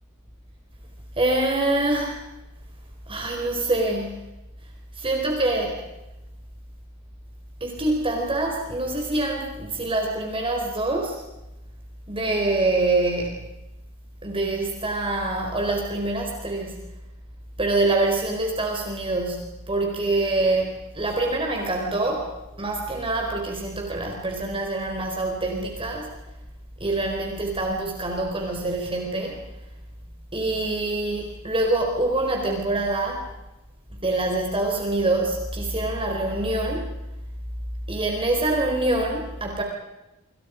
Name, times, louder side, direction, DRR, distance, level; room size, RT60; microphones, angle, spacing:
voice 1, 1.2-2.2 3.1-4.2 5.0-5.9 7.6-11.2 12.1-13.4 14.2-16.9 17.6-26.2 26.8-29.4 30.3-33.3 33.9-36.9 37.9-39.6, right 2 dB, 25° right, 1 dB, 4.3 m, -25 dB
28.5 x 27.0 x 5.2 m, 0.96 s
head